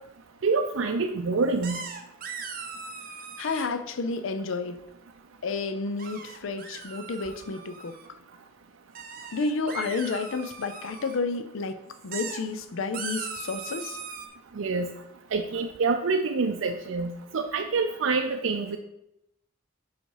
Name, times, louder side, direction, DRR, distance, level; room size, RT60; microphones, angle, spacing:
voice 1, 0.4-1.8 14.6-14.9 15.3-18.8, right 4 dB, 85° right, 0.5 m, -26 dB
sound 1, 1.6-3.7 6.0-8.1 8.9-11.2 11.9-12.4 12.9-14.3, right 5 dB, 45° right, 0.7 m, -39 dB
voice 2, 3.4-4.8 5.4-7.9 9.3-11.8 12.0-14.0, left 4 dB, 85° left, 0.5 m, -31 dB
5.2 x 5.0 x 4.7 m
head